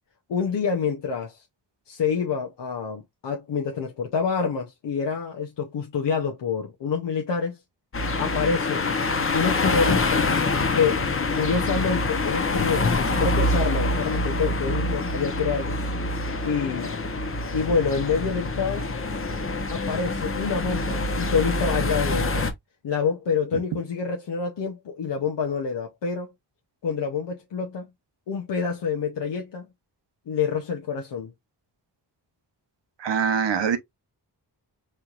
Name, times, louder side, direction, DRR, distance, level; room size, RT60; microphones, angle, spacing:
voice 1, 0.3-1.4 1.9-7.6 8.2-8.9 9.3-10.3 10.7-11.1 11.3-15.8 16.4-17.0 17.5-18.9 19.7-22.5 22.8-26.3 26.8-27.9 28.3-29.7 30.3-31.3, left 6 dB, 80° left, 0.7 m, -27 dB
sound 1, 7.9-22.5, left 2 dB, 30° left, 0.7 m, -25 dB
voice 2, 33.0-33.8, right 7 dB, 80° right, 0.8 m, -23 dB
4.4 x 3.1 x 2.4 m
wide cardioid pair, 95°, 42 cm